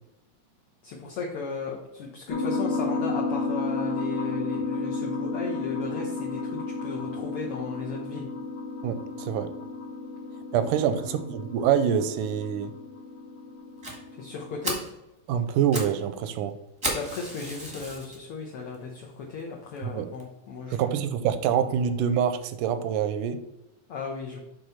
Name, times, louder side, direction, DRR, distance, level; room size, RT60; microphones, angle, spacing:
voice 1, 0.8-8.3 10.5-11.2 14.1-14.8 16.9-21.0 23.9-24.4, left 4 dB, 75° left, -1 dB, 1.3 m, -36 dB
sound 1, 2.3-14.7, left 3 dB, 45° left, 1.6 m, -32 dB
voice 2, 8.8-9.5 10.5-12.7 15.3-16.6 19.8-20.1 20.7-23.4, right 8 dB, 85° right, 10 dB, 2.1 m, -26 dB
Fire, 13.8-14.0 14.4-14.5 14.6-14.9 15.5-16.0 16.2-16.3 16.8-18.2 18.7-18.8 19.4-19.5 19.8-19.9 20.2-20.3, right 1 dB, 20° right, 0.7 m, -33 dB
8.0 x 3.6 x 5.5 m, 0.94 s
omnidirectional pair, 3.8 m